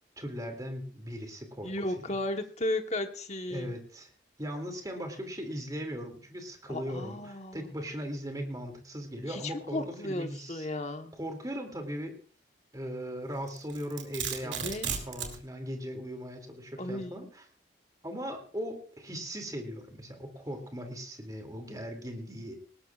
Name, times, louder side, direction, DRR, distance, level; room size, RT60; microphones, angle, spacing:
voice 1, 0.2-1.7 3.5-4.1 4.4-10.7 11.2-12.2 12.7-17.3 18.0-22.5, equal, 20° right, 4 dB, 2.7 m, -38 dB
voice 2, 1.6-3.7 6.7-7.7 9.3-11.1 14.4-14.9 16.8-17.3, left 1 dB, 40° left, 6 dB, 1.2 m, -35 dB
Domestic sounds home sounds, 13.5-15.4, right 7 dB, 85° right, 2.5 m, -35 dB
19.0 x 18.5 x 2.5 m, 0.42 s
head